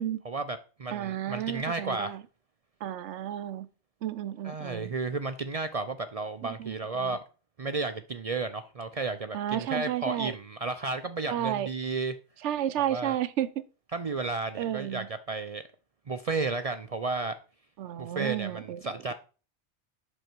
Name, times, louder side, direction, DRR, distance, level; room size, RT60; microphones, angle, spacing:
voice 1, 0.2-2.2 4.4-7.2 7.6-12.1 12.8-13.2 13.9-15.6 16.1-17.4 18.0-19.1, right 3 dB, 45° right, 0.5 m, -33 dB
voice 2, 0.9-2.2 2.8-3.7 4.0-4.9 6.4-7.2 9.3-10.3 11.3-11.7 12.4-13.5 14.6-15.1 17.8-19.1, right 11 dB, 90° right, 1.0 m, -32 dB
8.1 x 6.3 x 4.5 m
omnidirectional pair, 1.2 m